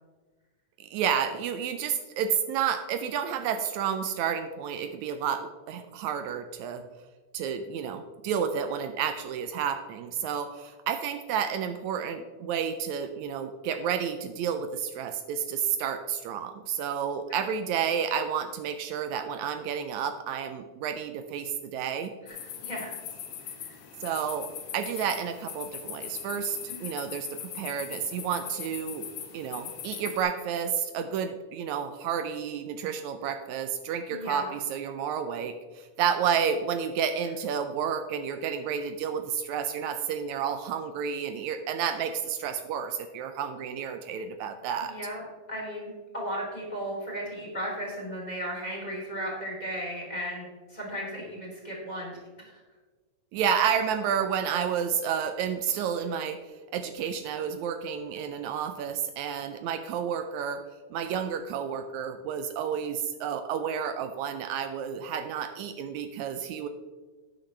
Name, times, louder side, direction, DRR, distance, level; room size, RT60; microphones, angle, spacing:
voice 1, 0.8-6.8 7.3-22.1 24.0-29.1 29.3-44.9 53.3-56.4 56.7-60.6 60.9-66.7, right 8 dB, 80° right, 8 dB, 1.9 m, -30 dB
sound 1, 22.3-30.2, left 9 dB, 75° left, 2.3 m, -40 dB
voice 2, 34.1-34.5 44.9-45.2 45.5-52.2 52.4-52.6, equal, 15° left, -3 dB, 3.0 m, -35 dB
12.0 x 9.0 x 3.3 m, 1.3 s
omnidirectional pair, 3.4 m